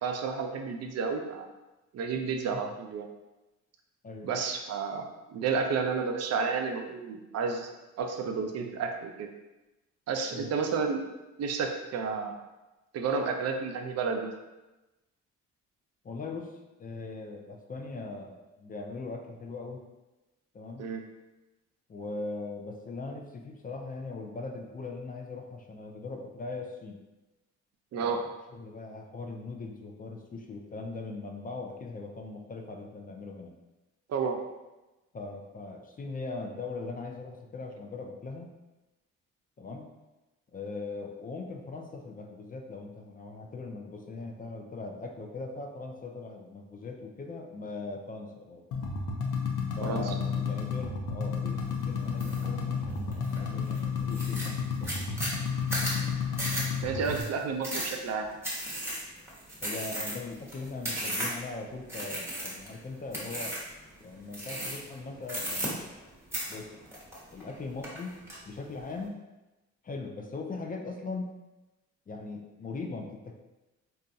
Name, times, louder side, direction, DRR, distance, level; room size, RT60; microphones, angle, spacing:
voice 1, 0.0-1.5 1.9-3.1 4.2-7.7 8.0-9.3 10.1-11.0 11.4-12.3 12.9-14.3 20.8-21.0 27.9-28.2 34.1-34.4 49.8-50.1 56.8-58.3, right 5 dB, 55° right, 4 dB, 0.5 m, -31 dB
voice 2, 16.0-19.8 20.5-20.9 21.9-27.0 28.0-33.5 35.1-38.5 39.6-39.9 40.5-48.6 49.8-55.2 59.6-63.6 64.0-65.8 66.5-66.7 67.3-68.1 68.5-69.2 69.8-71.3 72.1-73.3, left 3 dB, 30° left, 2 dB, 0.4 m, -40 dB
sound 1, 48.7-57.2, left 6 dB, 85° left, 0.6 m, -32 dB
sound 2, 52.2-52.5 52.9-53.4 53.8-53.9 54.1-61.5 61.9-62.7 63.1-63.7 64.3-64.9 65.2-66.1 66.3-67.5 67.8-68.4, right 1 dB, 10° right, 1.1 m, -35 dB
4.0 x 2.3 x 2.6 m, 1.1 s
cardioid pair, 90°, 30 cm